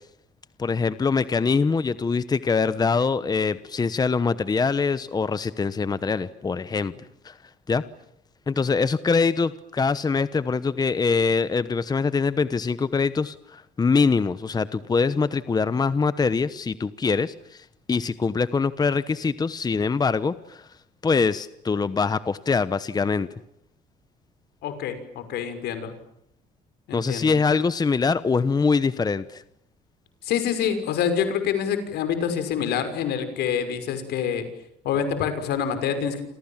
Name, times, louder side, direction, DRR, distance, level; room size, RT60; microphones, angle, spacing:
voice 1, 0.6-6.9 7.2-7.4 7.7-7.8 8.5-20.7 21.0-23.3 26.9-29.4, left 4 dB, 25° left, 15 dB, 1.0 m, -23 dB
voice 2, 24.6-25.9 26.9-27.3 30.2-34.4 34.8-36.2, left 8 dB, 75° left, 10 dB, 6.1 m, -26 dB
28.5 x 27.5 x 7.4 m, 0.76 s
cardioid pair, 110°, 17 cm